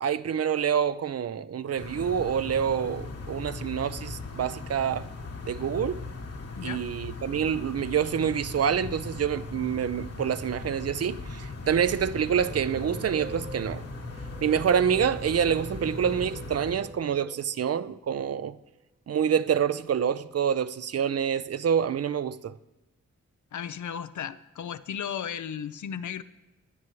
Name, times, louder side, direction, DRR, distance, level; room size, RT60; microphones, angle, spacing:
voice 1, 0.0-5.1 5.5-6.0 6.6-13.8 14.4-18.6 19.1-22.6, right 8 dB, 55° right, 0.5 m, -27 dB
sound 1, 1.8-16.8, left 3 dB, 55° left, 1.4 m, -39 dB
sound 2, 12.4-18.6, right 3 dB, 30° right, 0.9 m, -43 dB
voice 2, 23.5-26.2, left 8 dB, 80° left, 0.6 m, -35 dB
19.0 x 10.5 x 3.2 m
cardioid pair, 70°, 29 cm